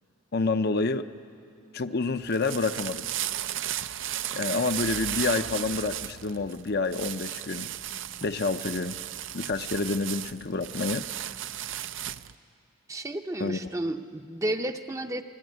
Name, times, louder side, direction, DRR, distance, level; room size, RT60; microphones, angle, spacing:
voice 1, 0.3-1.1 1.7-3.1 4.3-7.7 8.2-9.0 9.3-11.1 13.4-13.7, left 3 dB, 50° left, 9 dB, 0.7 m, -28 dB
sound 1, 2.1-12.3, right 12 dB, 60° right, 0.5 m, -35 dB
voice 2, 12.9-15.2, right 1 dB, 15° right, 7 dB, 0.7 m, -32 dB
26.5 x 20.5 x 9.3 m, 2.4 s
head